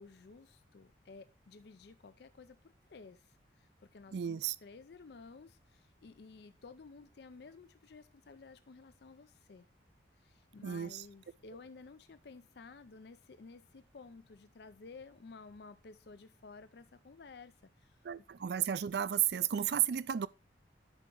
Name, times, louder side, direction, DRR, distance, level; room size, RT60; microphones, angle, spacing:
voice 1, 0.0-9.7 10.2-18.0, left 4 dB, 60° left, 0.4 m, -54 dB
voice 2, 4.1-4.6 10.6-11.0 18.0-20.3, right 10 dB, 60° right, 0.4 m, -33 dB
10.5 x 4.6 x 3.8 m
head